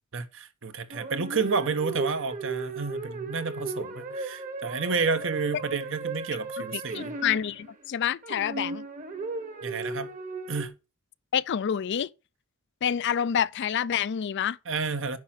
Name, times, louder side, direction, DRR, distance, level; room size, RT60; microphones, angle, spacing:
voice 1, 0.1-7.1 9.6-10.1 10.5-10.7 14.7-15.2, right 4 dB, 65° right, 1.1 m, -30 dB
sound 1, 0.9-7.9 8.2-10.7, right 3 dB, 35° right, 1.3 m, -36 dB
voice 2, 6.7-8.8 11.3-12.1 12.8-14.6, left 8 dB, 55° left, 0.4 m, -28 dB
9.5 x 5.9 x 5.9 m
head